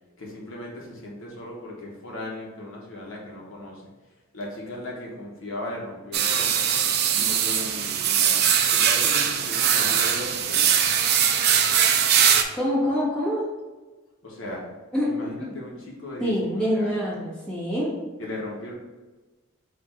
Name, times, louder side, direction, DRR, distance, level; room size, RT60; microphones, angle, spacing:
voice 1, 0.2-3.8 4.3-6.7 7.1-8.4 8.7-10.9 14.2-14.6 15.1-17.0 18.2-18.7, left 1 dB, 65° left, -3 dB, 1.0 m, -37 dB
sound 1, 6.1-12.4, right 8 dB, 50° right, 0.4 m, -21 dB
voice 2, 12.5-13.4 14.9-15.1 16.2-18.0, equal, 5° left, -8 dB, 1.3 m, -25 dB
4.5 x 2.5 x 4.3 m, 1.2 s
head